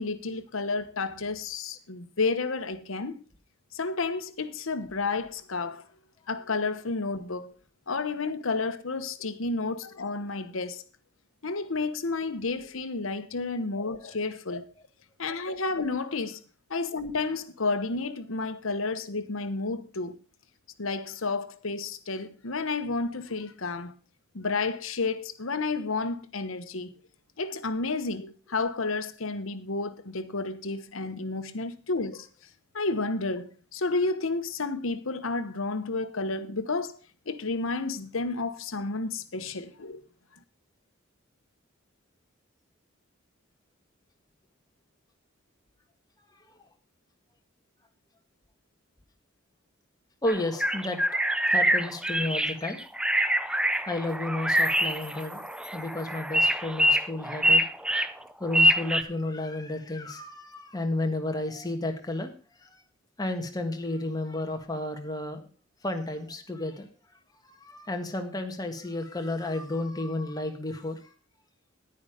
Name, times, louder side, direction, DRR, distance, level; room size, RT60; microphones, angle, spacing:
voice 1, 0.0-3.2 3.7-5.8 6.3-7.5 7.9-10.8 11.4-14.7 15.2-16.4 16.7-20.2 20.8-23.9 24.3-26.9 27.4-32.3 32.7-37.0 37.3-40.0, left 3 dB, 70° left, 1.1 m, -31 dB
voice 2, 46.3-46.7 50.2-51.0 51.5-52.8 53.9-55.4 55.7-57.6 58.4-62.3 62.6-62.8 63.2-65.4 65.8-66.9 67.4-71.1, left 2 dB, 20° left, 1.6 m, -32 dB
sound 1, 50.3-59.0, equal, 5° right, 0.5 m, -25 dB
sound 2, 51.6-51.7 52.0-52.1 52.3-52.5 52.8-52.9 53.6-53.8 54.1-56.4, right 1 dB, 25° right, 4.0 m, -49 dB
10.5 x 9.7 x 5.0 m
head